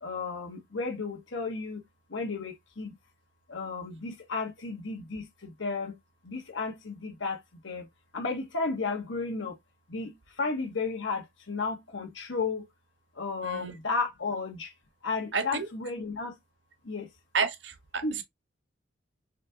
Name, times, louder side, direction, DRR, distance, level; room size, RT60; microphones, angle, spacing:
voice 1, 0.0-1.8 2.1-2.9 3.5-5.3 5.6-6.0 6.3-7.4 7.6-7.8 8.1-9.5 9.9-10.1 10.4-12.6 13.2-14.7 15.0-16.3 16.9-17.1 18.0-18.2, left 4 dB, 90° left, 1.2 m, -33 dB
voice 2, 15.3-15.7 17.3-18.2, right 5 dB, 75° right, 0.8 m, -31 dB
4.2 x 3.4 x 2.8 m
head